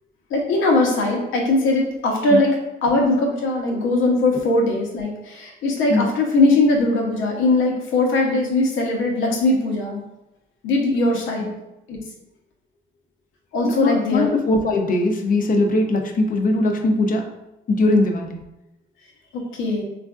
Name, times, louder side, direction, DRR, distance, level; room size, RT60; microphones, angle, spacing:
voice 1, 0.3-2.6 2.8-10.0 10.6-11.5 11.9-12.0 13.5-14.3 19.3-19.8, left 2 dB, 80° left, 0 dB, 0.8 m, -20 dB
voice 2, 13.6-17.3 17.7-18.4, left 2 dB, 45° left, 4 dB, 0.5 m, -20 dB
3.3 x 2.4 x 2.3 m, 0.93 s
cardioid pair, 90°, 20 cm